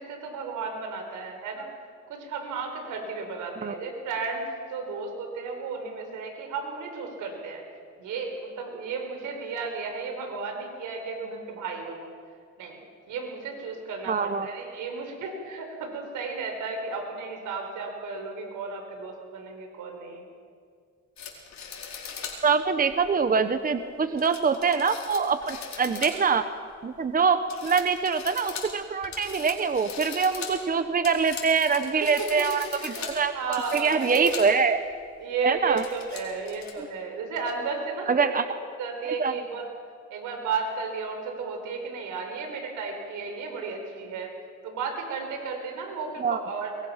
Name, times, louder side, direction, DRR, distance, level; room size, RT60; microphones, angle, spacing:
voice 1, 0.0-1.7 2.1-7.6 8.0-12.1 12.6-12.8 13.1-20.3 32.4-32.5 32.8-33.1 33.3-34.3 35.2-38.3 38.8-39.7 40.1-44.3 44.6-46.9, right 4 dB, 85° right, 3 dB, 4.7 m, -33 dB
voice 2, 14.1-14.5 22.4-26.4 26.8-34.8 35.4-35.8 36.8-36.9 38.1-38.4 39.2-39.3 46.2-46.4, right 5 dB, 30° right, 10 dB, 1.0 m, -24 dB
sound 1, 21.2-22.4 22.9-23.0 24.2-26.4 26.8-27.2 27.5-34.5 34.9-35.0 35.5-36.7, left 6 dB, 65° left, 4.8 m, -40 dB
23.5 x 22.5 x 5.8 m, 2.2 s
cardioid pair, 90°, 30 cm